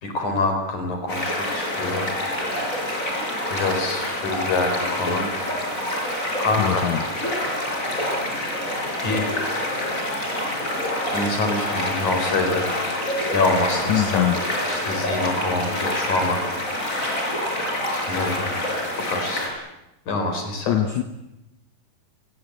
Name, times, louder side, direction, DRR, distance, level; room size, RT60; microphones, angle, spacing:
voice 1, 0.0-2.1 3.5-5.3 6.4-6.9 9.0-9.2 11.1-12.7 13.3-14.3 14.7-16.4 17.8-18.5 19.1-19.5 20.1-20.8, left 3 dB, 45° left, 5 dB, 5.7 m, -25 dB
sound 1, 1.1-19.5, left 1 dB, 20° left, 5.8 m, -26 dB
voice 2, 6.6-7.0 13.9-14.4 20.7-21.0, left 11 dB, 75° left, 8 dB, 1.7 m, -22 dB
29.5 x 21.0 x 8.1 m, 0.93 s
omnidirectional pair, 4.8 m